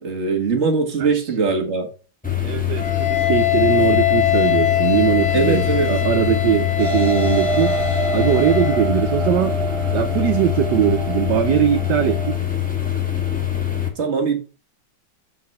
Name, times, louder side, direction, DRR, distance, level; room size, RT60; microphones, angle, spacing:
voice 1, 0.0-1.9 5.3-5.9 14.0-14.4, right 4 dB, 40° right, 2 dB, 1.8 m, -21 dB
sound 1, 2.2-13.9, left 11 dB, 5° left, 1.4 m, -24 dB
voice 2, 2.4-5.6 5.9-7.7 8.1-9.5 9.9-12.2, right 10 dB, 75° right, 7 dB, 1.2 m, -20 dB
Wind instrument woodwind instrument, 2.8-8.9, left 12 dB, 60° left, 0.4 m, -22 dB
sound 2, 6.8-12.4, right 5 dB, 20° right, 1.0 m, -27 dB
7.6 x 3.9 x 5.4 m, 0.35 s
omnidirectional pair, 2.0 m